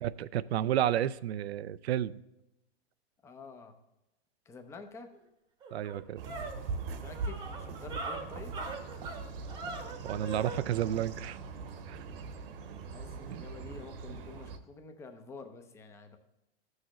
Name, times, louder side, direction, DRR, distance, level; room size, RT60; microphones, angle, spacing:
voice 1, 0.0-2.2 5.7-6.2 10.0-11.4 11.9-12.0 13.3-13.4, right 11 dB, 85° right, 17 dB, 0.5 m, -31 dB
voice 2, 3.2-3.8 4.5-5.1 7.0-8.6 12.9-16.2, left 4 dB, 10° left, 6 dB, 0.5 m, -48 dB
sound 1, 5.1-5.2 5.6-10.6, right 3 dB, 15° right, 0.9 m, -41 dB
sound 2, 6.2-14.6, right 4 dB, 60° right, 1.1 m, -41 dB
14.0 x 6.4 x 3.0 m, 0.92 s
hypercardioid pair, 150°, 31 cm